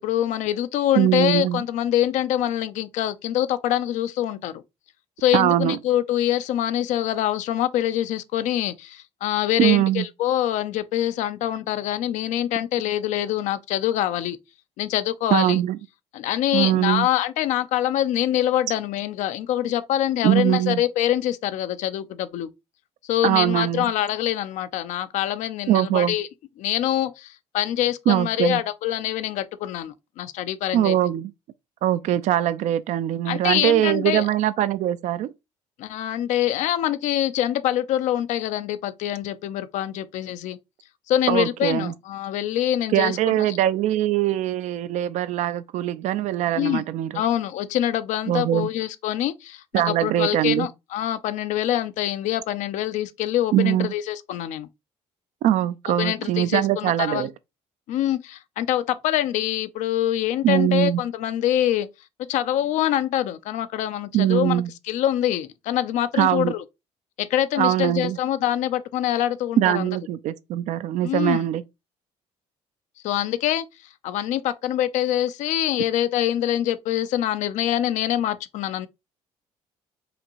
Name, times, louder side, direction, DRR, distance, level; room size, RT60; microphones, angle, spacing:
voice 1, 0.0-4.6 5.2-14.4 14.8-15.6 16.1-22.5 23.0-26.3 26.6-31.0 33.3-34.3 35.8-40.6 41.1-43.4 46.6-46.8 47.1-54.7 56.0-57.3 57.9-61.9 62.3-64.6 64.9-66.6 67.2-69.9 71.0-71.4 73.0-73.7 74.0-78.9, left 12 dB, 70° left, 0.5 m, -25 dB
voice 2, 1.0-1.6 5.3-5.8 9.6-10.1 15.3-15.8 16.5-17.1 20.2-20.8 23.2-23.9 25.7-26.2 28.1-28.6 30.7-31.3 31.8-35.3 41.3-41.9 42.9-47.2 48.3-48.7 49.7-50.7 53.5-53.9 55.4-57.3 60.4-61.0 64.1-64.7 66.2-66.5 67.6-68.2 69.6-71.6, right 13 dB, 70° right, 0.4 m, -22 dB
5.0 x 2.6 x 2.9 m
cardioid pair, 90°, 13 cm